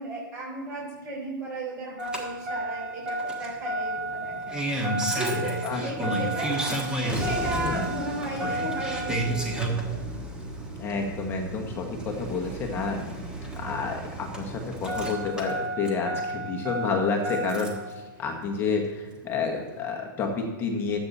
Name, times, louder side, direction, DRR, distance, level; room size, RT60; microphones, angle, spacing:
voice 1, 0.0-4.7 5.1-6.7 7.0-10.0 12.9-13.6, right 1 dB, 25° right, -5 dB, 3.8 m, -35 dB
Engine starting, 2.0-17.9 19.2-19.3, right 1 dB, 5° right, 1.5 m, -31 dB
voice 2, 5.6-6.1 7.5-7.9 10.8-13.0 13.6-17.8 18.2-21.0, left 4 dB, 20° left, 2 dB, 1.2 m, -29 dB
12.0 x 8.3 x 4.1 m, 1.2 s
hypercardioid pair, 145°, 12 cm